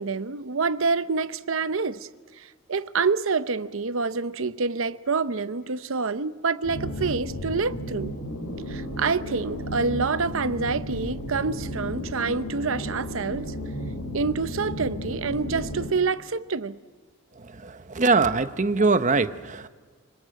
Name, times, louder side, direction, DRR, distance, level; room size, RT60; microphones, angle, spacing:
voice 1, 0.0-2.1 2.4-8.2 8.7-13.5 14.1-16.8, right 4 dB, 65° right, 0.8 m, -27 dB
sound 1, 6.6-15.9, equal, 85° left, 4.4 m, -33 dB
voice 2, 17.4-19.7, right 3 dB, 35° right, 0.8 m, -23 dB
26.0 x 24.5 x 7.6 m
head